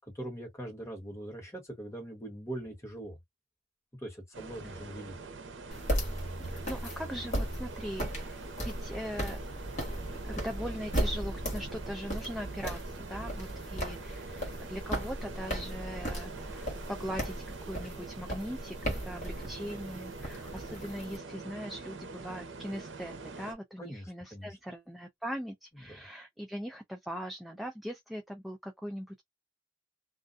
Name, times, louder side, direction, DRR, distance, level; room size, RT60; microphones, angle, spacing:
voice 1, 0.0-3.2 4.0-5.1 23.8-24.5 25.8-26.1, right 1 dB, 15° left, 1.3 m, -42 dB
sound 1, 4.3-23.5, right 3 dB, 80° right, 0.7 m, -44 dB
sound 2, 5.7-21.2, equal, 40° left, 1.3 m, -37 dB
voice 2, 6.5-9.4 10.3-29.2, equal, ahead, 0.3 m, -40 dB
2.4 x 2.2 x 2.5 m
head